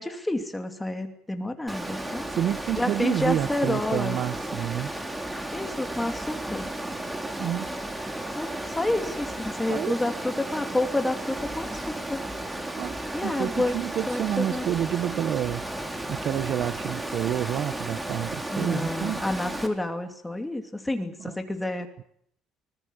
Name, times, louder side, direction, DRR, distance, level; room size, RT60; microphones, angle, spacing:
voice 1, 0.0-2.3 2.8-4.2 5.5-6.7 8.4-8.5 8.7-12.2 13.1-13.8 14.1-14.7 18.5-21.9, left 1 dB, 10° left, 2.7 m, -29 dB
Water, 1.7-19.7, right 1 dB, 10° right, 3.0 m, -34 dB
voice 2, 2.3-4.9 7.4-7.7 9.7-9.9 12.7-12.9 13.2-15.7 16.1-19.2 21.2-21.3, right 11 dB, 50° right, 0.9 m, -29 dB
24.5 x 20.0 x 8.1 m
cardioid pair, 145°, 0 cm